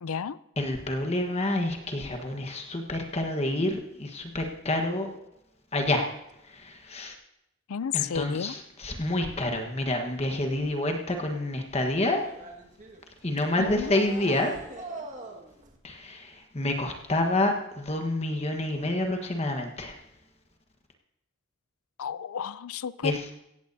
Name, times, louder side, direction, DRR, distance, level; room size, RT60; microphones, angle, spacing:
voice 1, 0.0-0.4 7.7-8.5 13.6-14.0 22.0-23.3, left 7 dB, 90° left, 17 dB, 0.5 m, -32 dB
voice 2, 0.6-5.1 5.7-6.1 6.5-7.1 7.9-12.2 13.2-14.5 15.8-19.9 23.0-23.2, left 1 dB, 30° left, 4 dB, 1.3 m, -28 dB
sound 1, 12.2-15.8, right 2 dB, 35° right, 1.8 m, -42 dB
17.0 x 15.0 x 2.7 m, 0.84 s
head